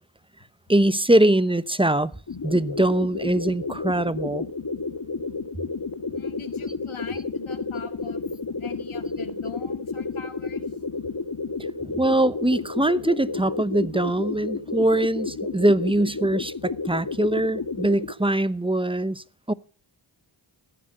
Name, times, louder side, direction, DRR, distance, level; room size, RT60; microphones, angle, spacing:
voice 1, 0.7-2.1 2.4-4.5 11.8-19.5, right 1 dB, 10° right, 0.8 m, -22 dB
sound 1, 2.3-18.1, left 4 dB, 45° left, 1.5 m, -31 dB
voice 2, 6.1-8.2 8.6-10.7, left 6 dB, 75° left, 2.2 m, -41 dB
14.5 x 10.0 x 6.5 m
cardioid pair, 45°, 49 cm